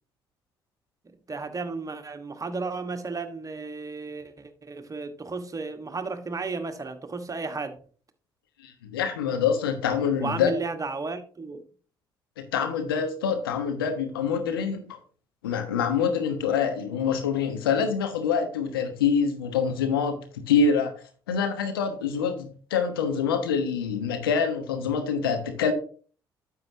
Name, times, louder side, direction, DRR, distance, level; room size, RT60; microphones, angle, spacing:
voice 1, 1.0-7.8 10.2-11.6, right 4 dB, 30° right, 1.4 m, -34 dB
voice 2, 8.6-10.5 12.5-15.0 15.4-20.9 21.3-25.7, left 6 dB, 85° left, 1.2 m, -25 dB
9.5 x 7.7 x 2.8 m
hypercardioid pair, 45°, 12 cm